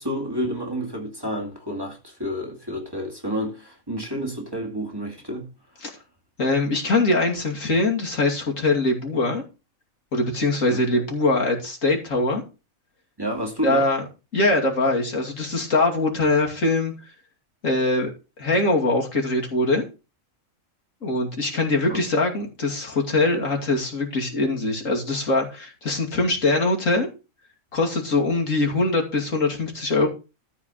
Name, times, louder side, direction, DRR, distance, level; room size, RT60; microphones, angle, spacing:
voice 1, 0.0-5.5 10.7-11.0 13.2-13.8 21.9-22.0, equal, 15° right, 2.3 m, -30 dB
voice 2, 6.4-9.4 10.1-12.4 13.6-14.0 14.3-16.9 17.6-18.1 18.4-19.8 21.0-27.1 27.7-30.1, left 2 dB, 70° left, 2.9 m, -22 dB
13.0 x 4.8 x 6.3 m
omnidirectional pair, 1.4 m